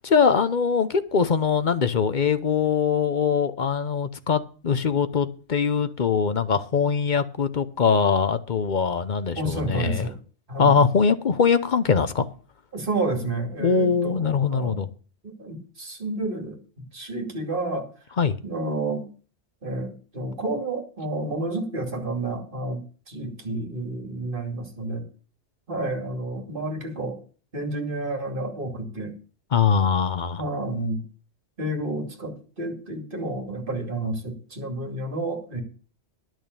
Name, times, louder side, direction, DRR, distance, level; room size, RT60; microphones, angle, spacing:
voice 1, 0.0-10.1 10.6-12.3 13.6-14.9 18.2-18.4 29.5-30.4, left 6 dB, 45° left, 0.8 m, -22 dB
voice 2, 9.4-10.1 10.5-10.7 12.7-14.8 15.2-16.6 16.9-17.9 18.4-19.0 19.6-25.1 25.7-27.2 27.5-29.1 30.4-31.0 31.6-35.6, right 2 dB, 50° right, 2.8 m, -30 dB
11.0 x 6.3 x 8.3 m
omnidirectional pair, 1.2 m